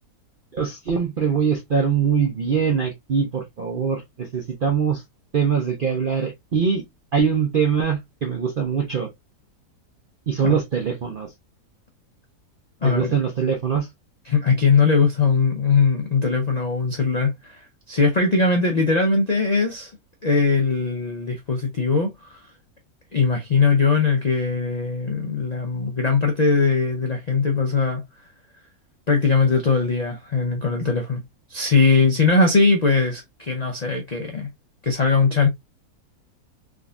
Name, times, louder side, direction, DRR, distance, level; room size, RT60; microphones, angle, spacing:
voice 1, 0.5-5.0 5.3-6.8 7.1-9.1 10.3-11.3 12.8-13.9, right 6 dB, 60° right, 0.5 m, -23 dB
voice 2, 12.8-13.1 14.2-19.9 20.2-22.4 23.1-28.0 29.1-31.2 31.5-34.5 34.8-35.5, left 4 dB, 65° left, 0.4 m, -20 dB
3.6 x 2.6 x 2.3 m
omnidirectional pair, 1.7 m